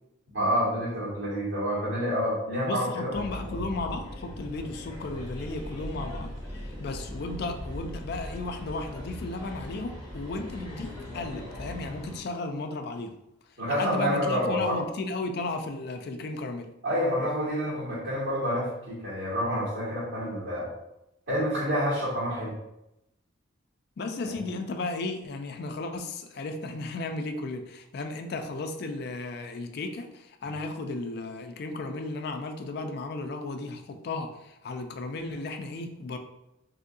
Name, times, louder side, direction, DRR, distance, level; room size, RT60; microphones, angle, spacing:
voice 1, 0.3-3.2 3.5-3.6 13.6-14.8 16.8-20.7 21.3-22.5, equal, 80° right, -9 dB, 1.4 m, -28 dB
voice 2, 2.6-13.1 13.7-16.7 24.0-36.2, left 2 dB, 55° left, 6 dB, 0.3 m, -34 dB
sound 1, 3.1-12.2, left 1 dB, 20° left, 1.2 m, -39 dB
3.5 x 2.7 x 2.6 m, 0.87 s
head